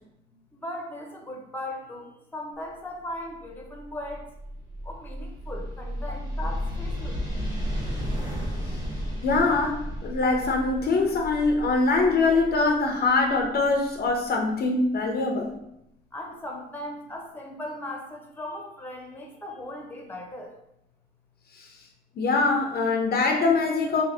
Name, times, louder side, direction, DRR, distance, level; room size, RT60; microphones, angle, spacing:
voice 1, 0.6-4.3 4.8-7.4 16.1-20.5, left 1 dB, 10° left, 1 dB, 0.7 m, -38 dB
sound 1, 3.3-14.1, equal, 20° right, 1.0 m, -34 dB
voice 2, 9.2-15.5 22.2-24.0, left 3 dB, 50° left, 2 dB, 0.5 m, -23 dB
2.8 x 2.8 x 3.2 m, 0.82 s
cardioid pair, 90°, 20 cm